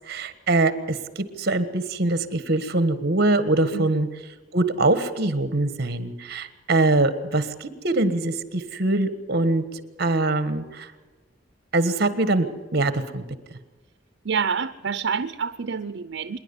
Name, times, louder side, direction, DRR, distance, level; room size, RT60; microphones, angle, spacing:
voice 1, 0.1-4.1 4.5-9.6 10.0-10.9 11.7-12.5 12.7-13.2 13.5-13.6, right 2 dB, 55° right, 12 dB, 1.5 m, -23 dB
voice 2, 14.2-16.4, right 6 dB, 75° right, 11 dB, 0.6 m, -27 dB
25.5 x 10.5 x 9.7 m, 1.2 s
head